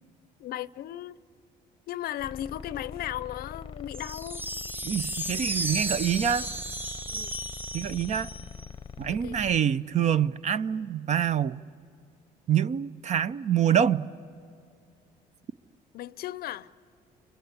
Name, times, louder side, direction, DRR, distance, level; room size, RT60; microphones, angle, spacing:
voice 1, 0.4-1.2 1.9-4.4 7.1-7.4 9.1-9.4 15.9-16.7, left 12 dB, 65° left, 0.6 m, -36 dB
sound 1, 2.2-9.6, left 6 dB, 30° left, 0.7 m, -43 dB
sound 2, 3.9-8.7, right 1 dB, 10° right, 0.8 m, -34 dB
voice 2, 4.8-6.5 7.7-8.3 9.0-11.6 12.5-14.1, right 9 dB, 45° right, 0.6 m, -26 dB
28.0 x 25.5 x 8.2 m
cardioid pair, 110°, 17 cm